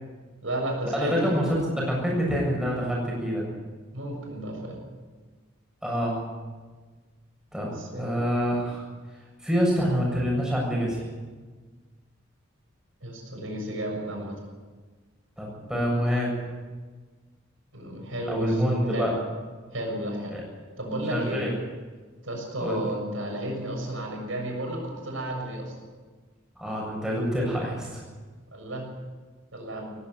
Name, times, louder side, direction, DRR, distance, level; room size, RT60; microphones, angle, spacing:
voice 1, 0.4-1.3 3.9-4.8 7.8-8.2 13.0-14.3 17.7-19.1 19.7-20.4 20.8-21.4 22.2-25.7 28.5-28.9 29.5-29.9, right 1 dB, 70° right, 1 dB, 7.0 m, -33 dB
voice 2, 0.9-3.5 5.8-6.2 7.5-7.7 8.0-8.9 9.4-11.0 15.4-16.3 18.3-19.2 20.3-20.4 21.1-21.5 22.6-22.8 26.6-28.0, equal, 5° right, -3 dB, 7.2 m, -26 dB
18.5 x 15.5 x 9.4 m, 1.4 s
head